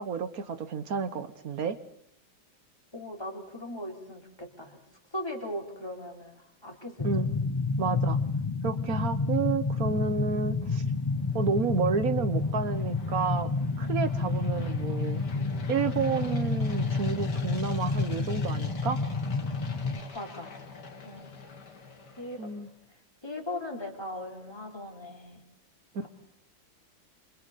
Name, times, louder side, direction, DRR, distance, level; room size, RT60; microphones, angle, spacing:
voice 1, 0.0-1.8 7.0-7.3 7.8-8.2 8.6-10.8 11.3-13.5 13.8-15.2 15.7-19.0 22.4-22.7, right 5 dB, 50° right, 12 dB, 1.3 m, -30 dB
voice 2, 2.9-4.8 5.1-7.3 19.7-20.5 21.0-21.3 22.2-22.5 23.2-25.4 26.0-26.1, left 1 dB, 10° left, 1 dB, 3.7 m, -39 dB
sound 1, 7.0-20.0, left 3 dB, 40° left, 0.4 m, -29 dB
sound 2, 10.5-22.7, left 4 dB, 55° left, 2.7 m, -46 dB
27.5 x 26.5 x 4.1 m, 0.72 s
omnidirectional pair, 2.2 m